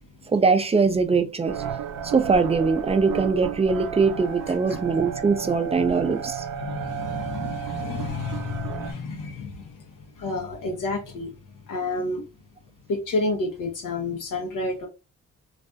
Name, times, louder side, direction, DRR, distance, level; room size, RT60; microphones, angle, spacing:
voice 1, 0.3-1.6 2.0-6.4, right 4 dB, 20° right, 0.4 m, -22 dB
sound 1, 1.4-8.9, right 8 dB, 75° right, 0.5 m, -33 dB
voice 2, 4.5-4.8 6.6-9.8 10.2-11.3 11.7-12.2 12.9-14.9, left 3 dB, 70° left, 0.7 m, -30 dB
2.4 x 2.1 x 2.4 m
supercardioid pair, 55°, 32 cm